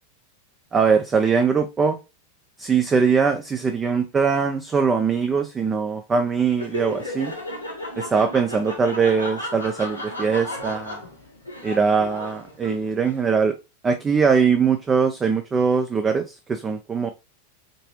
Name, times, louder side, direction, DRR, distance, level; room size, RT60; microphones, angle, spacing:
voice 1, 0.7-2.0 2.6-7.3 8.0-11.0 11.6-13.5 13.8-17.1, right 5 dB, 20° right, 0.5 m, -21 dB
Laughter, 6.5-13.1, left 1 dB, 90° left, 1.4 m, -34 dB
5.2 x 2.9 x 2.9 m
figure-of-eight pair, 90°, 0 cm